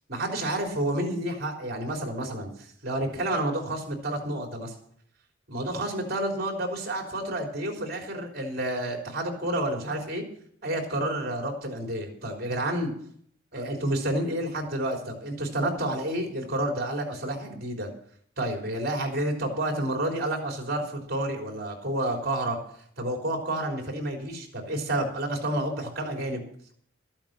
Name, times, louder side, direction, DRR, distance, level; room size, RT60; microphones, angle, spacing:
voice 1, 0.1-4.7 5.5-10.2 10.6-12.9 13.5-17.9 18.4-22.6 23.0-26.4, right 1 dB, 50° right, 2 dB, 3.6 m, -30 dB
13.5 x 8.8 x 7.5 m, 0.64 s
head